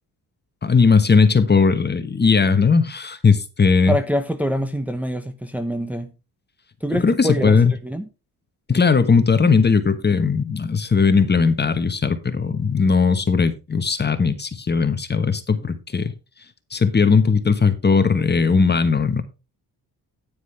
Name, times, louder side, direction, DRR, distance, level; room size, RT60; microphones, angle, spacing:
voice 1, 0.6-3.9 6.9-7.7 8.7-16.1 16.7-19.2, left 5 dB, 25° left, 1.3 m, -18 dB
voice 2, 3.9-6.1 6.8-8.1, equal, 5° right, 1.0 m, -25 dB
9.8 x 9.4 x 3.3 m
cardioid pair, 110°, 39 cm